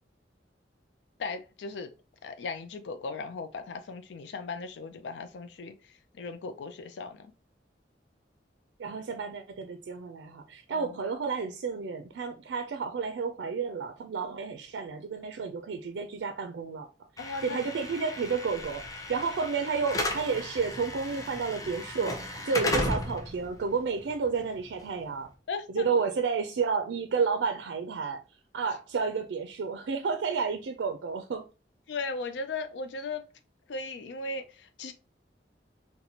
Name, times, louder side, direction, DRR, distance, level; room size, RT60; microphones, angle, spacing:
voice 1, 1.2-1.9 2.2-7.3 10.7-11.0 17.2-17.6 22.6-22.7 25.5-25.9 31.9-33.3 33.7-34.9, left 3 dB, 80° left, 0.4 m, -37 dB
voice 2, 8.8-16.9 17.4-25.3 25.7-28.2 28.5-31.5, right 5 dB, 90° right, 0.4 m, -31 dB
Slam / Alarm, 17.2-25.2, left 1 dB, 20° left, 0.6 m, -35 dB
4.1 x 2.1 x 2.7 m
head